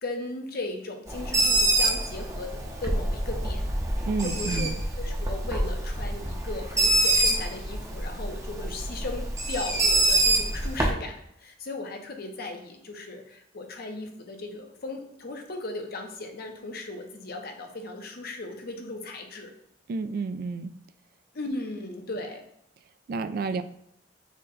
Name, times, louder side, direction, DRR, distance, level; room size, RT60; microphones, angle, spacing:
voice 1, 0.0-3.6 4.0-4.7 5.0-19.5 21.3-22.4, left 2 dB, 55° left, 3 dB, 0.7 m, -37 dB
Bird, 1.1-10.9, right 2 dB, 15° right, 0.6 m, -26 dB
voice 2, 4.1-4.7 19.9-20.7 23.1-23.6, right 4 dB, 55° right, 10 dB, 0.3 m, -30 dB
6.3 x 2.2 x 3.8 m, 0.74 s
head